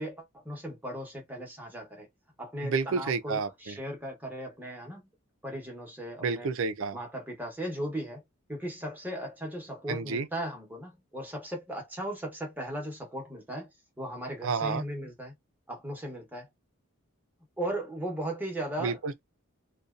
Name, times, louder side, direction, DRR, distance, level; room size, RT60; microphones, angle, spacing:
voice 1, 0.0-2.1 2.4-5.0 5.4-6.5 6.9-8.2 8.5-13.7 14.0-15.3 15.7-16.5 17.6-19.0, right 1 dB, 10° right, 0.9 m, -37 dB
voice 2, 2.6-3.8 6.2-7.0 9.9-10.3 14.4-14.8 18.8-19.2, right 4 dB, 70° right, 0.4 m, -30 dB
2.6 x 2.2 x 2.4 m
head